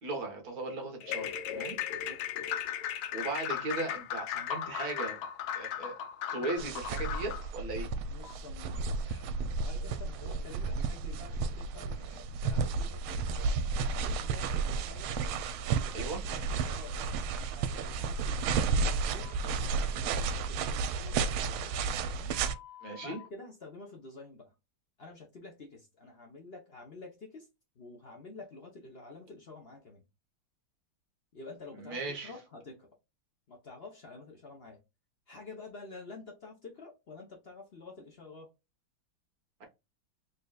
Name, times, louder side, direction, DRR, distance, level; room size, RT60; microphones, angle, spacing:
voice 1, 0.0-1.8 3.1-5.2 5.5-5.9 6.3-7.9 15.9-16.2 22.8-23.2 31.8-32.3 39.6-39.7, right 3 dB, 50° right, 1.5 m, -37 dB
sound 1, 1.0-7.5, left 9 dB, 80° left, 1.5 m, -36 dB
voice 2, 1.9-2.3 8.1-9.1 9.6-15.2 15.7-22.4 23.0-24.5 25.0-27.5 27.7-30.0 31.3-32.9 33.5-34.8 35.3-38.5, left 3 dB, 60° left, 0.6 m, -49 dB
sound 2, 6.6-22.5, right 4 dB, 90° right, 1.4 m, -32 dB
Telephone, 8.2-8.3 8.7-9.4 9.7-11.1 11.7-14.2 14.5-17.2 17.6-17.9 19.2-20.6 20.9-23.3, left 5 dB, 30° left, 1.4 m, -54 dB
4.2 x 3.3 x 2.3 m
omnidirectional pair, 2.2 m